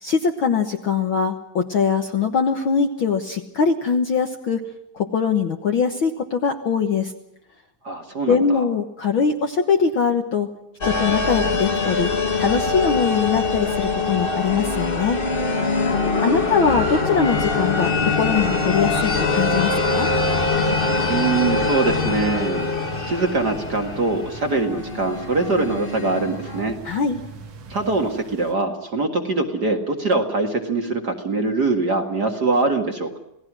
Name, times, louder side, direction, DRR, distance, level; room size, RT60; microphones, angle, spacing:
voice 1, 0.0-4.6 4.9-7.1 8.3-10.5 10.8-12.1 12.4-15.2 16.2-20.1 26.8-27.2, left 6 dB, 55° left, 4 dB, 1.6 m, -22 dB
voice 2, 7.8-8.7 16.0-16.8 21.1-22.7 23.0-26.8 27.7-33.2, right 3 dB, 35° right, 3 dB, 2.0 m, -23 dB
sound 1, 10.8-26.6, left 3 dB, 35° left, 0.9 m, -23 dB
sound 2, 17.8-28.5, right 3 dB, 80° right, 3.6 m, -39 dB
28.0 x 18.0 x 6.2 m, 0.84 s
omnidirectional pair, 3.5 m